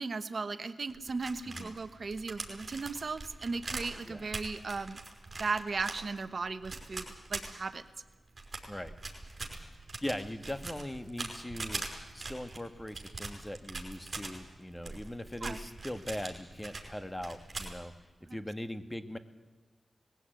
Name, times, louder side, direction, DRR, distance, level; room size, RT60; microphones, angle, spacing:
voice 1, 0.0-5.0 5.4-7.8 15.4-15.6 18.3-18.4, right 4 dB, 60° right, 12 dB, 1.1 m, -36 dB
sound 1, 0.9-8.0 8.4-14.3 14.8-16.9 17.2-17.8, right 3 dB, 45° right, 5.6 m, -41 dB
voice 2, 1.5-1.8 4.1-4.3 8.7-8.9 10.0-11.8 12.1-17.9 18.3-19.2, left 1 dB, 15° left, 11 dB, 1.7 m, -40 dB
20.5 x 16.0 x 9.2 m, 1.2 s
cardioid pair, 50°, 0 cm